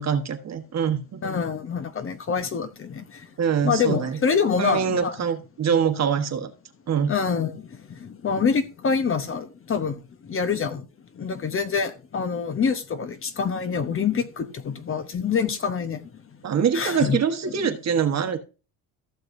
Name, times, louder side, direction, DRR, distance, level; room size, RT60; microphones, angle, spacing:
voice 1, 0.0-1.2 3.4-4.2 4.6-6.5 6.9-7.1 16.4-18.4, right 7 dB, 40° right, 1.3 m, -24 dB
voice 2, 1.2-3.0 3.6-5.1 7.1-7.7 8.0-10.0 10.3-10.8 11.2-16.0 16.7-17.2, left 6 dB, 35° left, 0.9 m, -26 dB
15.0 x 6.6 x 2.6 m
cardioid pair, 110°, 40 cm